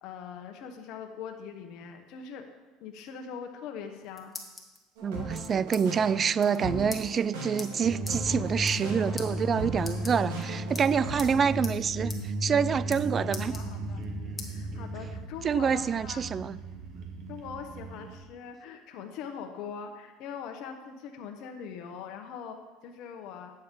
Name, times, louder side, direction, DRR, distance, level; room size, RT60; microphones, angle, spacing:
voice 1, 0.0-2.5 2.8-4.4 8.6-9.0 12.7-13.0 13.5-14.0 14.4-16.2 17.3-23.5, left 7 dB, 60° left, 4 dB, 1.0 m, -42 dB
sound 1, 3.8-4.8 5.3-5.8 6.1-6.2 6.4-6.6 6.9-7.0 7.6-7.7 8.1-8.2 8.6-8.9 9.2-9.3 9.8-10.4 10.8-11.3 11.6-11.8 12.1-12.2 12.5-13.0 13.3-14.0 14.4-14.5 15.0-15.9, left 2 dB, 10° left, 1.4 m, -42 dB
voice 2, 5.0-13.6 15.4-16.6, right 7 dB, 35° right, 18 dB, 0.3 m, -27 dB
sound 2, 5.0-11.5, right 2 dB, 85° right, 2.3 m, -38 dB
sound 3, 7.8-18.1, equal, 55° right, 1.7 m, -35 dB
9.4 x 7.0 x 5.2 m, 1.2 s
supercardioid pair, 110°, 0 cm